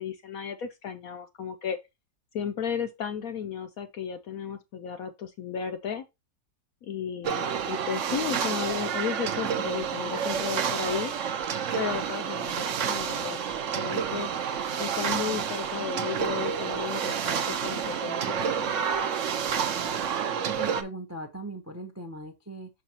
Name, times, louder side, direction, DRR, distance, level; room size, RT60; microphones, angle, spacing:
voice 1, 0.0-1.8 2.3-6.0 6.8-11.1 11.7-13.5 13.7-14.3 14.8-18.7, left 8 dB, 70° left, 0.8 m, -34 dB
sound 1, 7.2-20.8, right 7 dB, 65° right, 0.8 m, -29 dB
voice 2, 18.2-18.5 19.7-22.7, right 2 dB, 25° right, 0.3 m, -40 dB
6.2 x 5.6 x 2.8 m
omnidirectional pair, 2.0 m